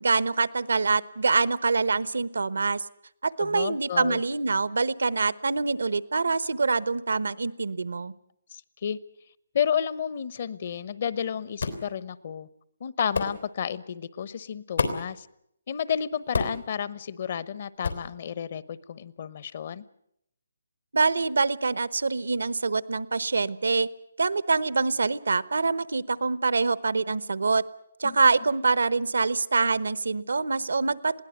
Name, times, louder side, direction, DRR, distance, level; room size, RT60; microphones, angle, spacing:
voice 1, 0.0-2.8 3.2-8.1 20.9-23.9 24.2-27.6 28.0-31.2, right 4 dB, 85° right, 17 dB, 1.0 m, -25 dB
voice 2, 3.4-4.2 8.5-9.0 9.5-12.5 12.8-15.3 15.7-19.8 28.0-28.2, left 8 dB, 45° left, 18 dB, 1.0 m, -31 dB
sound 1, 11.6-11.9 13.1-13.4 14.8-15.1 16.3-16.7 17.8-18.1, left 4 dB, 85° left, 3.6 m, -28 dB
21.5 x 17.0 x 9.3 m, 0.75 s
hypercardioid pair, 160°, 0 cm